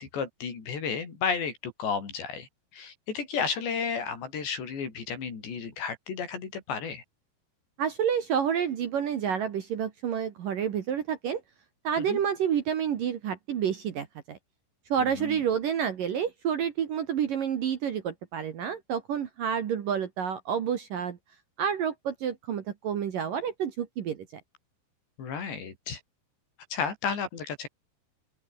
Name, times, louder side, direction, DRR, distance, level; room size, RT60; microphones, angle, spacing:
voice 1, 0.0-2.5 2.7-7.0 12.0-12.2 15.0-15.4 25.2-26.0 26.7-27.7, left 6 dB, 65° left, 7.2 m, -33 dB
voice 2, 7.8-11.4 11.8-14.4 14.9-21.2 21.6-24.2, right 8 dB, 55° right, 2.8 m, -29 dB
open air
omnidirectional pair, 5.5 m